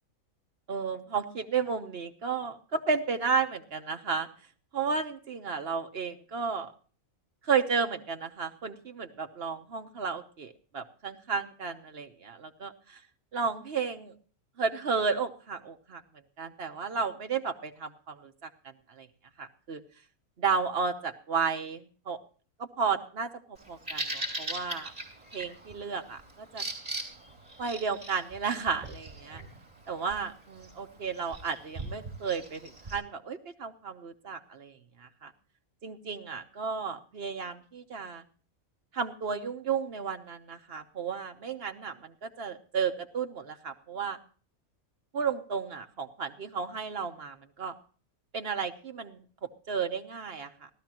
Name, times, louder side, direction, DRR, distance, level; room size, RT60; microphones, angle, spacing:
voice 1, 0.7-4.3 4.7-6.7 7.4-13.0 13.3-14.1 14.6-16.0 16.4-18.5 19.0-19.1 19.4-19.8 20.4-22.2 22.6-24.9 25.3-26.6 27.6-29.4 29.9-35.3 35.8-38.2 38.9-44.2 45.1-47.7 48.3-50.7, right 5 dB, 50° right, 7 dB, 1.1 m, -33 dB
Bird vocalization bird call bird song, 23.6-33.0, right 2 dB, 25° right, 3.4 m, -41 dB
15.5 x 13.0 x 2.9 m, 0.40 s
omnidirectional pair, 1.5 m